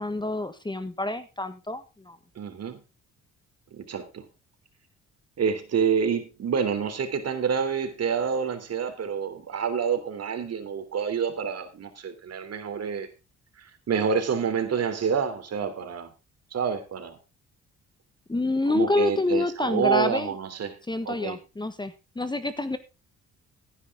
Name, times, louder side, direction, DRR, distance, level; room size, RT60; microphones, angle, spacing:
voice 1, 0.0-2.2 18.3-20.3 20.9-22.8, left 2 dB, 15° left, 12 dB, 1.4 m, -27 dB
voice 2, 2.3-2.8 3.7-4.3 5.4-13.1 13.6-16.1 16.5-17.2 18.7-20.8 21.0-21.4, right 6 dB, 55° right, 9 dB, 3.2 m, -28 dB
16.0 x 9.9 x 3.7 m, 0.28 s
cardioid pair, 90°, 30 cm